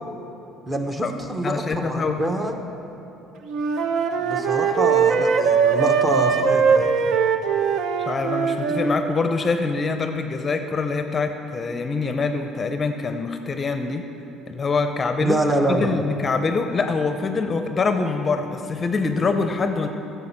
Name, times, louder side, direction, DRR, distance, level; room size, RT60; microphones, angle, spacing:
voice 1, 0.7-2.6 4.2-7.1 15.2-16.0, right 1 dB, 15° right, 5 dB, 0.9 m, -25 dB
voice 2, 1.4-2.2 8.1-14.0 14.5-15.4 15.7-19.9, left 4 dB, 30° left, 7 dB, 0.6 m, -24 dB
Wind instrument woodwind instrument, 3.5-9.0, right 6 dB, 65° right, 0.6 m, -20 dB
9.6 x 6.9 x 5.9 m, 2.9 s
supercardioid pair, 100°, 0 cm